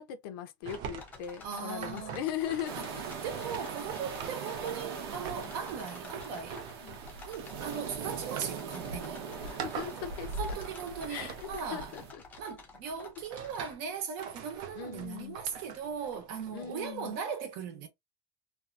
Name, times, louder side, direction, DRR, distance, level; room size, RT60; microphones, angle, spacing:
voice 1, 0.0-3.0 5.4-5.5 6.8-7.0 9.4-10.6 11.1-12.2 14.7-15.4 16.5-17.1, left 10 dB, 75° left, 0.6 m, -39 dB
sound 1, 0.6-13.7, left 4 dB, 15° left, 0.5 m, -52 dB
sound 2, 0.6-12.5 13.0-13.9 14.2-17.2, right 7 dB, 40° right, 0.5 m, -45 dB
voice 2, 1.4-2.3 2.8-2.9 3.2-6.6 7.3-9.2 10.4-11.9 12.4-17.9, right 7 dB, 60° right, 0.8 m, -38 dB
sound 3, 2.7-12.1, right 5 dB, 90° right, 0.8 m, -41 dB
2.7 x 2.4 x 2.3 m
cardioid pair, 175°, 12 cm